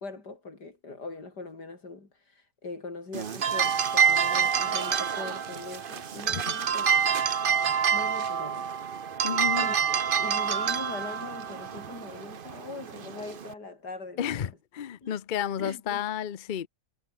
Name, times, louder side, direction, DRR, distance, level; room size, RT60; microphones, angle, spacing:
voice 1, 0.0-6.9 7.9-8.7 9.6-9.8 10.2-14.4 15.0-15.2 15.6-16.0, left 3 dB, 85° left, 4.9 m, -41 dB
sound 1, 3.1-13.5, right 7 dB, 40° right, 0.9 m, -27 dB
voice 2, 9.2-9.7 14.2-16.7, left 9 dB, 50° left, 0.6 m, -31 dB
omnidirectional pair, 1.7 m